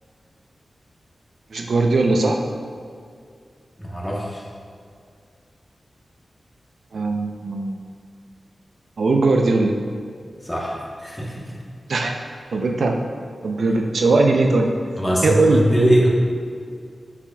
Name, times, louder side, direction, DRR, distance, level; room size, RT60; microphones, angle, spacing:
voice 1, 1.5-2.4 6.9-7.8 9.0-9.8 11.9-12.1 12.5-13.0 13.4-14.7 15.2-15.7, right 3 dB, 70° right, 3 dB, 0.6 m, -19 dB
voice 2, 3.8-4.5 10.4-11.6 15.0-16.1, equal, 10° left, -4 dB, 1.1 m, -21 dB
7.6 x 6.8 x 2.3 m, 2.2 s
wide cardioid pair, 140°, 0 cm